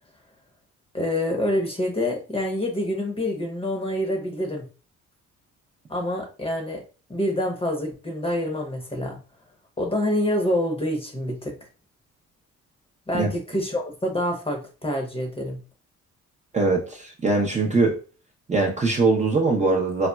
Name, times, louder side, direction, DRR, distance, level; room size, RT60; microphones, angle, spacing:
voice 1, 0.9-4.6 5.9-6.8 7.1-9.2 9.8-11.5 13.1-15.6, left 1 dB, 20° left, 2 dB, 0.8 m, -26 dB
voice 2, 16.5-18.0 18.5-20.1, right 3 dB, 25° right, 0 dB, 0.6 m, -21 dB
4.0 x 2.1 x 2.2 m, 0.36 s
cardioid pair, 90°, 30 cm